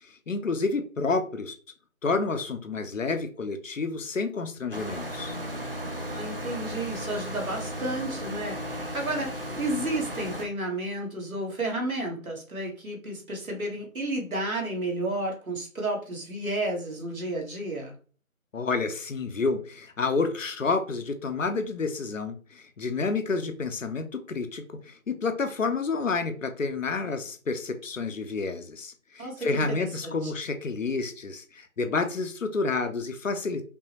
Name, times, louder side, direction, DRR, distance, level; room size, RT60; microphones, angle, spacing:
voice 1, 0.3-1.6 2.0-5.4 18.5-33.6, left 4 dB, 65° left, 0.7 m, -29 dB
sound 1, 4.7-10.4, equal, 45° right, 0.5 m, -35 dB
voice 2, 5.9-17.9 29.2-30.3, right 1 dB, 80° right, 1.7 m, -32 dB
5.3 x 2.1 x 2.9 m
figure-of-eight pair, 170°, 42 cm